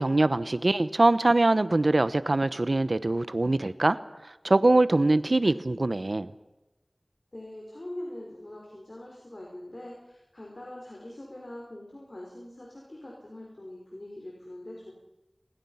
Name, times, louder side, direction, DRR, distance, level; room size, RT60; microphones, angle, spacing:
voice 1, 0.0-4.0 4.4-6.3, right 2 dB, 70° right, 14 dB, 1.1 m, -23 dB
voice 2, 7.3-14.9, left 1 dB, 55° left, -2 dB, 5.6 m, -43 dB
29.5 x 20.5 x 5.8 m, 1.1 s
wide cardioid pair, 45°, 0 cm